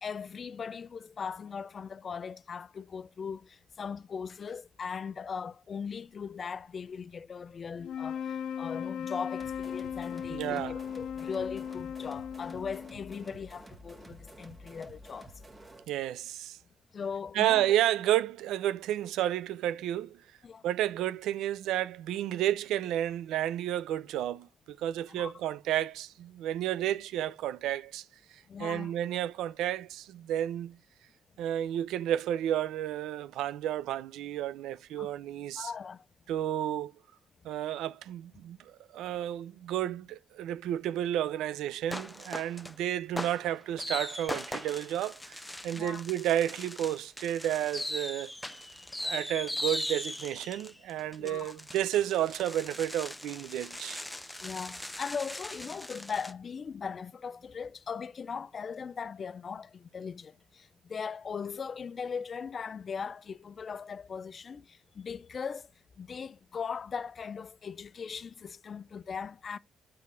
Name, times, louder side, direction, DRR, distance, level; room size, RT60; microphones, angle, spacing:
voice 1, 0.0-15.3 16.9-17.7 20.4-20.7 25.1-25.3 28.5-28.9 35.0-35.1 35.6-36.0 45.7-46.0 51.2-51.5 54.4-69.6, left 6 dB, 40° left, 0.4 m, -39 dB
sound 1, 7.8-13.2, left 8 dB, 65° left, 0.7 m, -37 dB
sound 2, 9.4-15.9, right 1 dB, 15° right, 1.3 m, -51 dB
voice 2, 10.3-10.8 15.9-16.6 17.3-20.2 20.6-28.0 28.3-30.8 31.4-35.7 36.3-36.9 37.4-48.3 49.0-54.0, right 12 dB, 90° right, 0.4 m, -31 dB
sound 3, 41.9-42.7 43.2-56.3, left 1 dB, 5° left, 0.7 m, -39 dB
7.6 x 3.5 x 5.4 m
cardioid pair, 115°, 0 cm